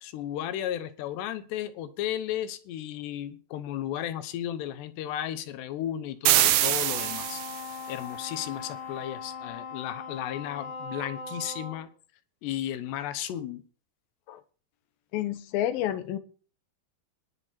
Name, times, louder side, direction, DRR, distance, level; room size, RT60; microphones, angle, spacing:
voice 1, 0.0-7.4 7.9-11.9 12.4-13.6, left 11 dB, 90° left, 12 dB, 3.2 m, -34 dB
sound 1, 6.3-7.8, right 13 dB, 90° right, 1.7 m, -24 dB
Wind instrument woodwind instrument, 6.8-11.9, left 5 dB, 40° left, 4.2 m, -40 dB
voice 2, 15.1-16.2, left 12 dB, 70° left, 11 dB, 2.5 m, -29 dB
19.5 x 6.7 x 4.3 m, 0.39 s
omnidirectional pair, 4.8 m